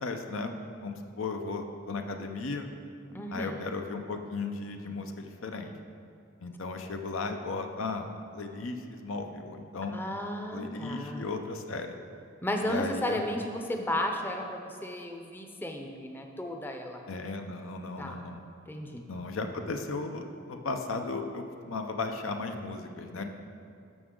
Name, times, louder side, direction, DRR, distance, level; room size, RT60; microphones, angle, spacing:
voice 1, 0.0-2.7 3.3-5.7 6.4-10.0 10.5-11.9 12.6-13.2 17.1-18.4 19.1-23.2, left 3 dB, 80° left, 5 dB, 0.7 m, -36 dB
voice 2, 3.1-3.6 9.9-11.3 12.4-17.0 18.0-18.2 18.7-19.0 23.2-23.3, left 1 dB, 10° left, 3 dB, 0.6 m, -34 dB
12.5 x 6.1 x 3.8 m, 2.5 s
head